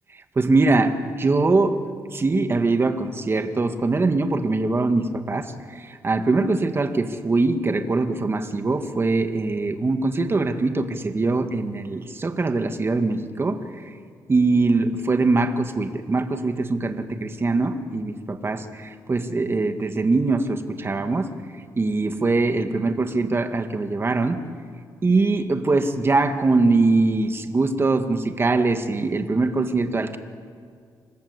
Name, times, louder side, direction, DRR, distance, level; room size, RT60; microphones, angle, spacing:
voice 1, 0.4-1.8 2.1-13.8 14.3-21.3 21.8-24.4 25.0-30.2, right 3 dB, 30° right, 7 dB, 1.9 m, -22 dB
26.5 x 20.0 x 8.3 m, 2.2 s
cardioid pair, 95°, 8 cm